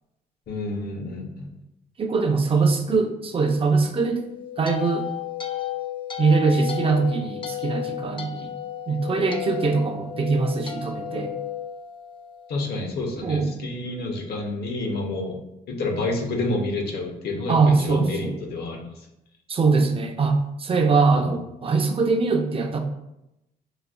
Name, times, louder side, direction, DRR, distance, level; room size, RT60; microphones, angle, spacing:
voice 1, 0.5-1.5 2.9-3.0 12.5-15.4 15.7-18.8 21.2-21.3, left 2 dB, 70° left, 2 dB, 0.7 m, -29 dB
voice 2, 2.0-4.3 4.6-5.1 6.2-8.6 8.9-11.4 13.2-13.6 17.5-18.4 19.5-22.8, right 4 dB, 35° right, 4 dB, 0.5 m, -22 dB
sound 1, 4.1-12.5, left 10 dB, 30° left, 0.4 m, -33 dB
3.9 x 2.3 x 2.3 m, 0.87 s
cardioid pair, 80°, 17 cm